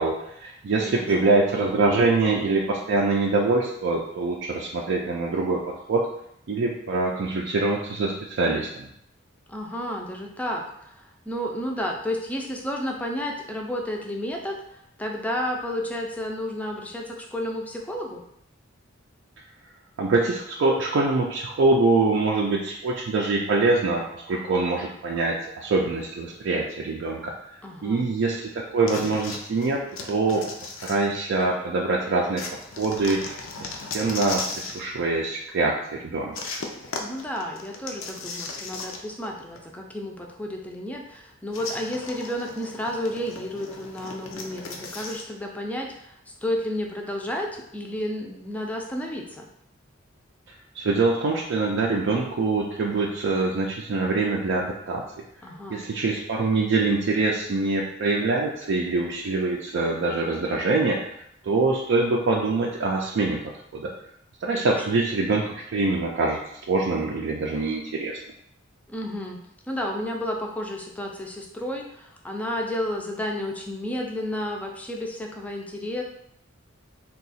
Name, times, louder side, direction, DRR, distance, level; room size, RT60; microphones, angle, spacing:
voice 1, 0.0-6.1 6.5-8.9 20.0-27.3 27.8-30.4 30.8-32.4 32.8-33.3 33.6-33.7 33.9-36.3 50.7-55.0 55.7-63.4 63.7-63.9 64.4-66.4 66.7-68.2, right 3 dB, 60° right, -1 dB, 0.4 m, -24 dB
voice 2, 0.8-1.3 9.5-14.6 15.0-18.2 27.6-28.1 37.0-49.5 55.4-55.8 64.6-65.0 68.9-69.4 69.7-76.0, left 1 dB, 5° left, 1 dB, 0.4 m, -31 dB
sound 1, 28.9-31.6 32.4-34.9 36.3-39.3 39.6-39.7 41.5-45.3, left 3 dB, 75° left, 0.5 m, -36 dB
2.8 x 2.3 x 4.1 m, 0.74 s
head